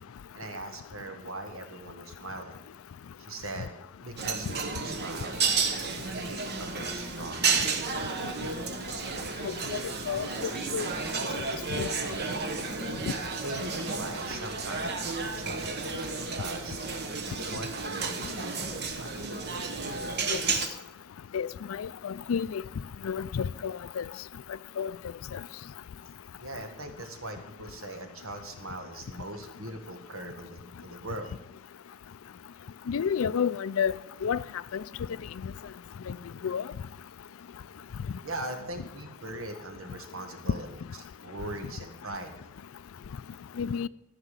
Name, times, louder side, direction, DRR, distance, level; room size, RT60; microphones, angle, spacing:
voice 1, 0.3-2.6 3.2-3.7 4.0-5.4 6.1-7.5 13.4-16.8 17.4-19.2 26.4-31.3 38.2-40.7 41.2-42.3, right 2 dB, 85° right, 1.8 m, -40 dB
sound 1, 4.2-20.7, right 4 dB, 50° right, 1.2 m, -32 dB
voice 2, 10.1-10.9 11.7-11.9 20.3-20.4 21.3-22.6 23.0-24.0 24.8-24.9 25.3-25.4 32.9-33.9 34.2-34.4 34.7-34.8 36.1-36.2 36.4-36.6 43.6-43.9, left 7 dB, 75° left, 0.4 m, -30 dB
13.5 x 6.1 x 8.2 m
head